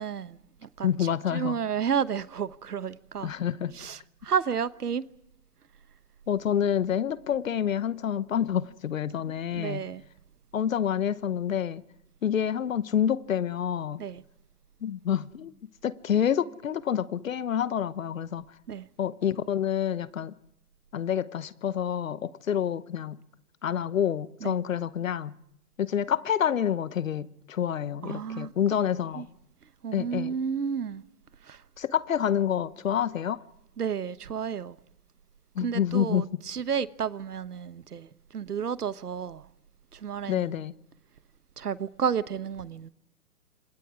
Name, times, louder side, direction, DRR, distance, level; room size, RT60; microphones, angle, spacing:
voice 1, 0.0-3.3 3.7-5.0 9.5-10.0 14.0-14.2 18.7-18.9 24.4-24.6 28.0-28.5 29.1-29.3 29.8-31.0 31.4-31.6 33.8-34.8 35.6-39.5 39.9-40.6 41.6-42.9, right 7 dB, 70° right, 1.1 m, -32 dB
voice 2, 0.8-1.5 3.2-3.8 6.3-9.8 10.5-11.8 12.2-14.0 14.8-15.5 15.8-18.4 19.0-20.3 20.9-23.2 23.6-25.3 25.8-29.3 29.9-30.3 31.8-33.4 35.6-36.2 40.3-40.7, left 9 dB, 55° left, 1.0 m, -28 dB
28.5 x 26.0 x 4.9 m
figure-of-eight pair, 135°, 48 cm